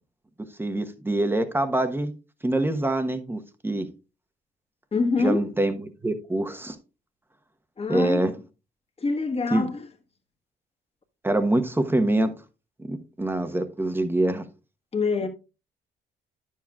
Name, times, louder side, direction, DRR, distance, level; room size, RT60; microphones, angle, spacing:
voice 1, 0.6-2.1 2.4-3.8 5.2-6.8 7.9-8.3 9.5-9.7 11.2-12.3 12.9-14.4, right 1 dB, 10° right, 1.0 m, -25 dB
voice 2, 4.9-5.4 7.8-8.3 9.0-9.8 14.9-15.3, left 4 dB, 30° left, 1.5 m, -25 dB
10.0 x 7.4 x 2.3 m
cardioid pair, 90°, 20 cm